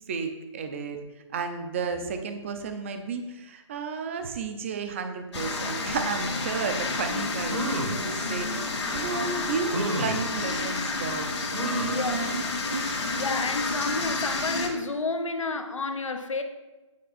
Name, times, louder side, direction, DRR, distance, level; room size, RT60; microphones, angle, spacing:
voice 1, 0.1-1.0 1.3-12.4 12.7-13.1, right 5 dB, 25° right, 0.6 m, -33 dB
sound 1, 5.3-14.7, left 3 dB, 60° left, 2.0 m, -30 dB
sound 2, 7.4-8.0 8.8-8.9 9.7-10.2 11.5-12.0 12.5-12.6 12.9-13.0, right 1 dB, 70° right, 1.6 m, -31 dB
voice 2, 11.9-12.2 13.1-16.4, left 3 dB, 75° left, 1.0 m, -30 dB
9.4 x 5.8 x 4.2 m
hypercardioid pair, 160°, 16 cm